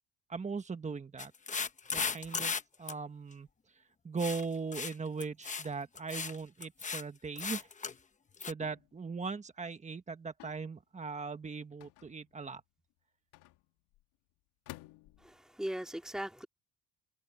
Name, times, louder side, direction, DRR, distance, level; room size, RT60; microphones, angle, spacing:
voice 1, 0.3-1.3 1.9-2.5 2.8-3.5 4.0-7.7 8.5-12.6, right 4 dB, 20° right, 1.4 m, -39 dB
sound 1, 1.2-2.6 2.9-3.0 4.2-4.4 4.7-4.9 5.2-5.7 6.0-6.4 6.6-7.0 7.4-7.9 8.4-8.5, left 5 dB, 20° left, 0.9 m, -36 dB
sound 2, 8.6-9.0 10.4-10.7 11.8-12.4 13.3-14.0 14.7-15.4, left 17 dB, 85° left, 1.8 m, -53 dB
voice 2, 15.2-16.5, equal, ahead, 2.6 m, -39 dB
cardioid pair, 145°, 39 cm